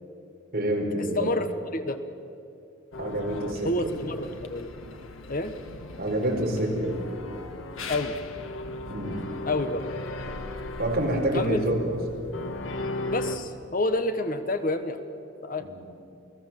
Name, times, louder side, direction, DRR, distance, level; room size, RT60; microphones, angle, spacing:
voice 1, 0.5-1.3 3.0-4.0 6.0-7.1 8.9-9.2 10.8-12.0 15.6-15.8, right 1 dB, 50° right, 0 dB, 4.9 m, -27 dB
voice 2, 1.1-1.5 1.7-2.0 3.6-4.7 5.3-5.5 7.9-8.2 9.4-9.8 11.3-11.6 13.1-15.0 15.4-15.6, left 2 dB, 45° left, 9 dB, 1.3 m, -28 dB
sound 1, 2.9-13.4, left 2 dB, 85° left, 1.7 m, -37 dB
29.0 x 18.5 x 7.6 m, 2.6 s
head